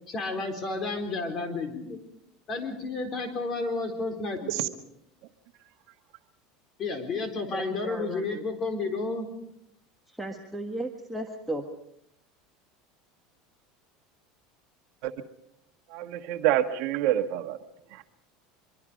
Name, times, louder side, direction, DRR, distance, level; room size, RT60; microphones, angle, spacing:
voice 1, 0.1-2.0 2.5-4.7 6.8-9.3, left 3 dB, 30° left, 7 dB, 4.2 m, -31 dB
voice 2, 7.5-8.4 10.1-11.7, right 1 dB, ahead, 0 dB, 1.5 m, -35 dB
voice 3, 15.9-17.6 17.9-18.0, right 12 dB, 60° right, 7 dB, 1.5 m, -27 dB
24.5 x 24.0 x 5.2 m, 0.75 s
supercardioid pair, 150°, 0 cm